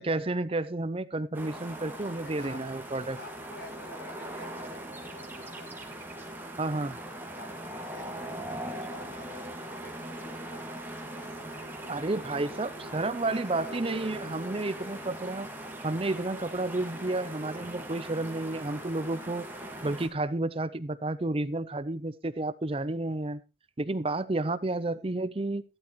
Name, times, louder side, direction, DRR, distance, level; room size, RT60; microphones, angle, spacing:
voice 1, 0.0-3.2 6.6-7.0 11.9-15.5 15.8-19.5 19.8-23.4 23.8-25.6, right 2 dB, 30° right, 14 dB, 0.5 m, -31 dB
sound 1, 1.3-20.1, right 1 dB, 10° right, 2.2 m, -40 dB
voice 2, 2.2-2.7 3.2-6.1 7.4-7.6 7.9-12.0 12.5-15.0 24.6-25.1, left 2 dB, 55° left, 9 dB, 1.6 m, -50 dB
14.5 x 11.5 x 3.0 m, 0.29 s
head